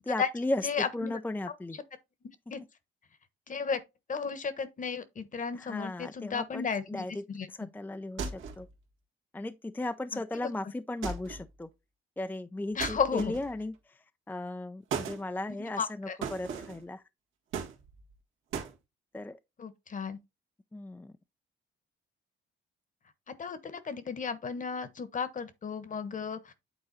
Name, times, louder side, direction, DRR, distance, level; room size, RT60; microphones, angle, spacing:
voice 1, 0.0-1.8 5.5-8.7 9.3-11.7 12.2-17.0 19.1-19.4 20.7-21.1, left 2 dB, 10° left, 0.5 m, -36 dB
voice 2, 0.6-1.2 2.5-2.6 3.5-3.8 4.1-7.5 10.1-10.2 12.7-13.3 15.8-16.2 19.6-20.2 23.4-26.5, left 6 dB, 40° left, 1.2 m, -34 dB
sound 1, 8.2-8.7 11.0-11.5 12.8-13.6 14.9-15.2 16.2-16.8 17.5-18.1 18.5-18.8, right 6 dB, 80° right, 1.7 m, -37 dB
8.8 x 3.9 x 4.0 m
cardioid pair, 90°, 20 cm